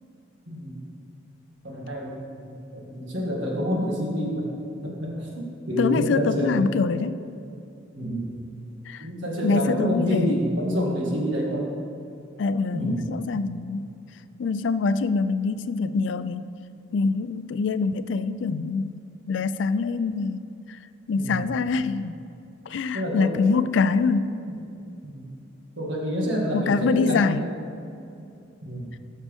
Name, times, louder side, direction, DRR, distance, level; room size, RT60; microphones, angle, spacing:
voice 1, 0.5-0.8 1.6-4.5 4.8-6.7 7.9-8.3 9.0-11.7 12.7-13.1 21.2-21.5 22.9-23.6 24.5-24.6 25.0-25.3 25.8-27.4 28.6-28.9, equal, 65° right, -2 dB, 1.9 m, -28 dB
voice 2, 5.8-7.2 8.9-9.1 9.4-10.4 12.4-13.9 14.4-16.4 16.9-19.0 19.3-20.4 20.7-20.8 21.1-22.2 22.7-24.4 26.5-27.4, left 4 dB, 65° left, 13 dB, 0.3 m, -24 dB
14.5 x 6.4 x 3.6 m, 2.6 s
head